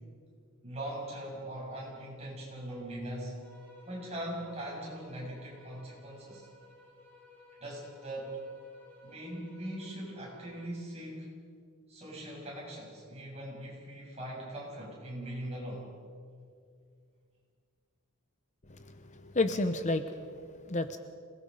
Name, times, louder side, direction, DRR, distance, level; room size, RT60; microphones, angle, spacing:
voice 1, 0.6-3.4 3.9-6.5 7.6-8.4 9.0-11.3 11.9-15.9, right 1 dB, 30° right, -3 dB, 6.8 m, -41 dB
sound 1, 3.4-10.9, left 2 dB, 10° left, 7.3 m, -58 dB
voice 2, 18.7-21.0, left 2 dB, 35° left, 9 dB, 0.8 m, -32 dB
27.0 x 19.5 x 5.5 m, 2.2 s
head